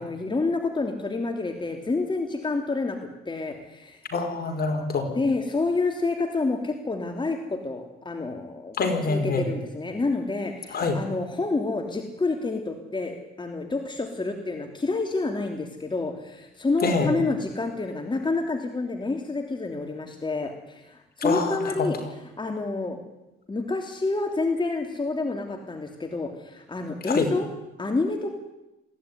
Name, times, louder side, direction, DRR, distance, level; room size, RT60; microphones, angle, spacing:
voice 1, 0.0-4.0 5.1-8.8 9.1-23.0 23.5-27.5 27.8-28.4, left 3 dB, 25° left, 4 dB, 3.2 m, -28 dB
voice 2, 4.1-5.2 8.8-9.5 10.7-11.0 16.8-17.1 21.2-21.9 27.1-27.3, left 4 dB, 50° left, 5 dB, 5.0 m, -25 dB
22.0 x 16.0 x 9.9 m, 0.96 s
cardioid pair, 90°, 20 cm